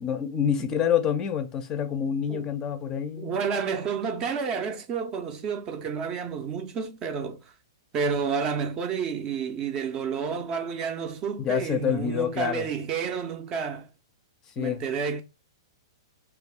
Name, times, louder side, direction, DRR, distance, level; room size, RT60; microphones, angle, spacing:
voice 1, 0.0-3.3 11.4-12.7 14.6-14.8, left 8 dB, 25° left, 0.5 m, -27 dB
voice 2, 3.1-7.4 7.9-13.9 14.6-15.2, right 6 dB, 30° right, 0.5 m, -30 dB
2.4 x 2.3 x 3.4 m
hypercardioid pair, 130°, 2 cm